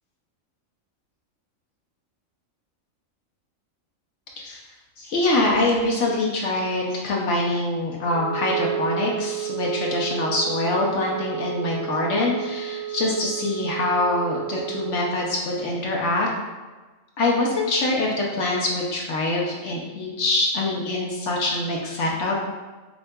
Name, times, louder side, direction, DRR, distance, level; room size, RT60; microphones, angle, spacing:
voice 1, 5.0-16.3 17.2-22.4, left 2 dB, 65° left, -2 dB, 0.9 m, -24 dB
Wind instrument woodwind instrument, 8.0-15.1, right 13 dB, 65° right, 1.1 m, -31 dB
6.9 x 2.4 x 2.2 m, 1.3 s
omnidirectional pair, 1.4 m